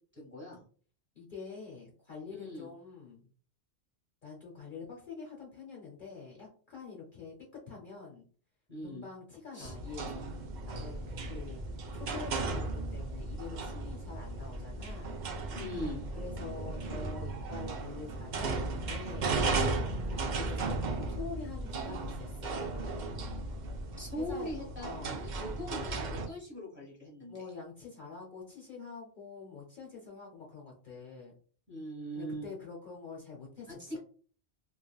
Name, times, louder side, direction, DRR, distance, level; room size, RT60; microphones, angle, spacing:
voice 1, 0.1-0.6 2.3-2.7 8.7-9.0 9.5-9.7 15.5-16.1 24.0-27.4 31.7-32.5 33.7-34.0, equal, 10° right, -4 dB, 1.2 m, -41 dB
voice 2, 1.2-3.3 4.2-7.3 7.7-8.2 8.8-10.3 10.7-11.6 12.0-15.1 16.1-19.4 20.0-23.1 24.2-25.1 27.3-31.3 32.1-33.7, left 5 dB, 55° left, -2 dB, 0.8 m, -46 dB
sound 1, 9.6-26.3, right 3 dB, 60° right, 0.5 m, -36 dB
3.2 x 2.3 x 2.3 m, 0.43 s
omnidirectional pair, 1.1 m